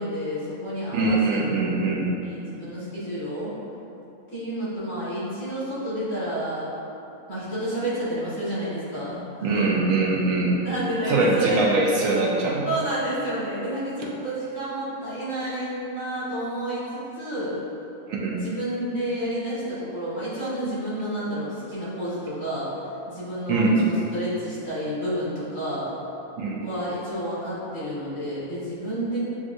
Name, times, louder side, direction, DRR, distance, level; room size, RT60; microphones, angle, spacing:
voice 1, 0.0-1.4 2.2-3.5 4.3-6.7 7.3-9.8 10.6-11.6 11.9-12.0 12.7-17.6 18.3-22.7 23.1-25.8 26.5-29.2, right 1 dB, 60° left, -12 dB, 2.0 m, -30 dB
voice 2, 0.9-2.1 9.4-10.6 11.1-12.7 18.1-18.4 23.5-23.8 26.4-26.6, right 3 dB, 75° right, -3 dB, 1.0 m, -22 dB
7.0 x 2.4 x 2.5 m, 2.9 s
omnidirectional pair, 1.5 m